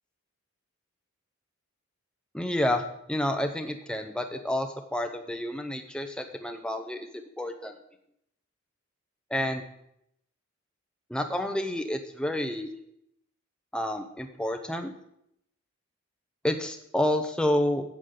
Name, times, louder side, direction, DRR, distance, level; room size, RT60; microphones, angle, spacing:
voice 1, 2.3-7.8 9.3-9.6 11.1-12.7 13.7-14.9 16.4-17.8, left 1 dB, 5° left, 5 dB, 0.7 m, -29 dB
11.5 x 8.3 x 3.8 m, 0.76 s
head